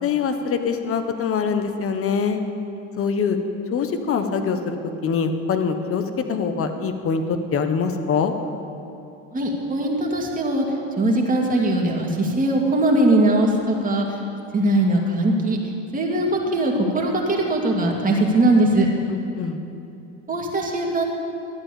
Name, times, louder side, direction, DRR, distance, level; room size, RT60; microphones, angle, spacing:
voice 1, 0.0-2.4 3.0-3.4 3.7-4.8 5.0-6.0 6.3-8.3 19.1-19.6, left 6 dB, 40° left, 7 dB, 1.2 m, -24 dB
voice 2, 9.3-10.6 11.0-14.1 14.5-15.6 15.9-18.9 20.3-21.0, right 1 dB, 20° right, -1 dB, 2.4 m, -20 dB
13.0 x 8.8 x 7.1 m, 2.7 s
supercardioid pair, 100°, 36 cm